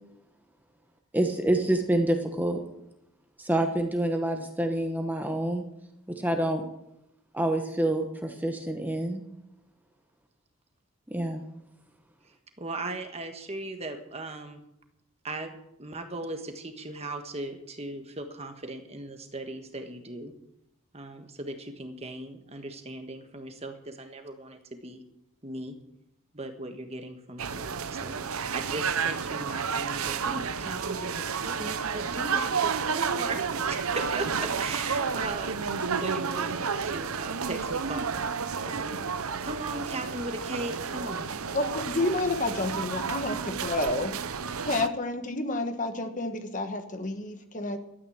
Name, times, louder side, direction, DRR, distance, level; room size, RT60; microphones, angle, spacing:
voice 1, 1.1-2.6 3.4-5.6 6.2-6.6 7.3-9.2 11.1-11.4, right 1 dB, 10° right, 4 dB, 1.1 m, -27 dB
voice 2, 12.6-14.6 15.2-15.5 15.8-20.3 20.9-25.0 25.4-25.7 26.3-35.6 36.0-38.3 38.6-41.3, right 2 dB, 30° right, 6 dB, 1.5 m, -38 dB
sound 1, 27.4-44.9, right 6 dB, 80° right, 0.8 m, -31 dB
voice 3, 41.5-44.2 44.6-47.8, left 2 dB, 35° left, 7 dB, 1.2 m, -30 dB
12.5 x 9.3 x 8.8 m, 0.82 s
head